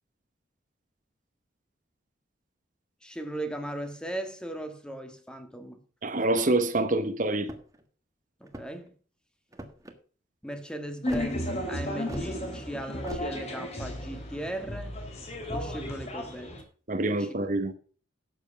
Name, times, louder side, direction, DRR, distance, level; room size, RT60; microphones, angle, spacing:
voice 1, 3.0-5.8 8.4-8.9 10.4-14.9 15.5-16.6 17.2-17.3, right 1 dB, 5° left, 1.6 m, -37 dB
voice 2, 6.0-7.5 16.9-17.7, right 2 dB, 45° right, 1.1 m, -26 dB
sound 1, 7.4-7.8 8.4-8.9 9.5-9.9 11.1-11.3 12.1-12.3 13.0-13.3, right 1 dB, 20° right, 1.5 m, -41 dB
sound 2, 11.0-16.6, left 1 dB, 35° left, 3.5 m, -34 dB
12.0 x 8.0 x 4.9 m
head